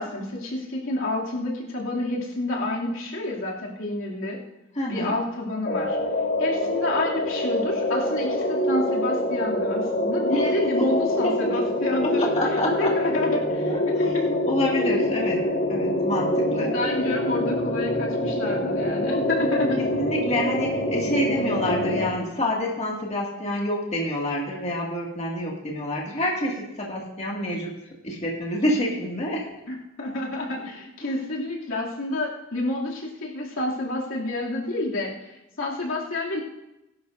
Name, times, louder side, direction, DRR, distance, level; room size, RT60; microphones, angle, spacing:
voice 1, 0.0-4.4 4.9-6.0 6.4-12.2 12.8-14.2 16.6-19.8 29.7-36.4, left 2 dB, 90° left, -3 dB, 2.7 m, -29 dB
voice 2, 4.8-5.1 10.3-10.5 12.2-12.9 13.7-13.8 14.2-15.4 15.7-16.7 19.8-27.7 28.0-29.5 31.0-31.1, left 1 dB, 35° left, -3 dB, 2.1 m, -27 dB
sound 1, 5.7-22.1, left 1 dB, 50° left, 1.8 m, -25 dB
20.0 x 11.5 x 2.6 m, 0.93 s
head